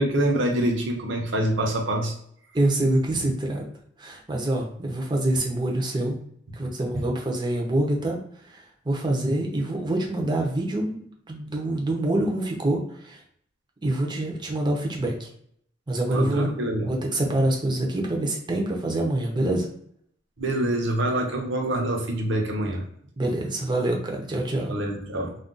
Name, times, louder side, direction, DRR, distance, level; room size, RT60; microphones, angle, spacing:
voice 1, 0.0-2.1 6.9-7.0 16.1-16.9 20.4-22.8 24.7-25.3, right 1 dB, 70° right, 1 dB, 0.7 m, -25 dB
voice 2, 2.5-3.6 4.0-6.2 6.6-8.2 8.4-13.2 13.8-15.3 15.9-16.5 16.8-19.7 23.2-24.7, right 1 dB, 25° right, 0 dB, 0.6 m, -26 dB
2.4 x 2.3 x 3.8 m, 0.68 s
head